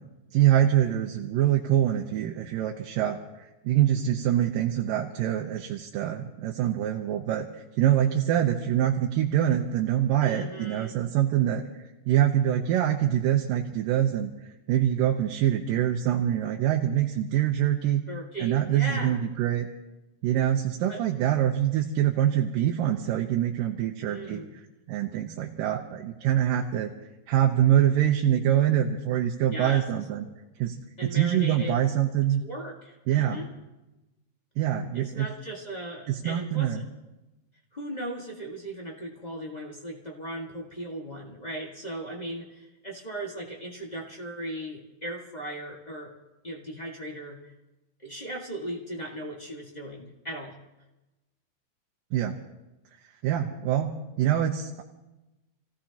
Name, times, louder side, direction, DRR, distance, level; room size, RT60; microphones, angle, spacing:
voice 1, 0.3-11.6 12.1-18.0 18.4-19.7 20.2-24.6 24.9-26.9 27.3-30.3 30.6-30.8 31.0-32.4 33.1-33.4 34.6-35.3 36.1-36.8 52.1-52.4 53.2-54.8, right 11 dB, 75° right, 1 dB, 2.4 m, -25 dB
voice 2, 10.2-11.0 18.1-19.2 20.9-21.0 24.1-24.5 29.5-29.8 31.0-31.8 32.4-33.5 34.9-36.7 37.7-46.1 46.4-47.5 48.0-50.6, right 1 dB, 60° left, -2 dB, 0.4 m, -37 dB
29.0 x 17.0 x 2.9 m, 1.0 s
omnidirectional pair, 4.2 m